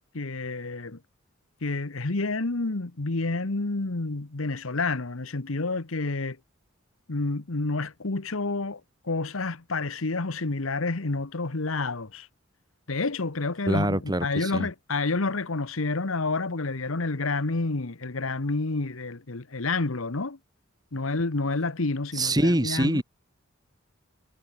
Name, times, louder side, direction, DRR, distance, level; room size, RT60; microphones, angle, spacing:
voice 1, 0.1-1.0 1.6-6.4 7.1-12.3 12.9-20.4 20.9-23.0, left 3 dB, 75° left, 1.3 m, -29 dB
voice 2, 13.7-14.7 22.1-23.0, right 1 dB, 20° right, 2.9 m, -24 dB
head